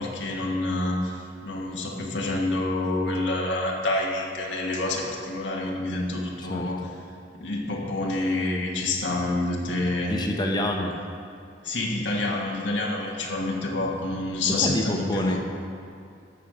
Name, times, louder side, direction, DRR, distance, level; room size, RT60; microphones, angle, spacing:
voice 1, 0.0-6.8 7.3-10.1 11.6-15.4, left 2 dB, 80° left, -1 dB, 1.4 m, -28 dB
voice 2, 10.1-10.9 14.5-15.4, left 1 dB, 25° left, 2 dB, 0.9 m, -27 dB
11.5 x 7.2 x 4.9 m, 2.4 s
head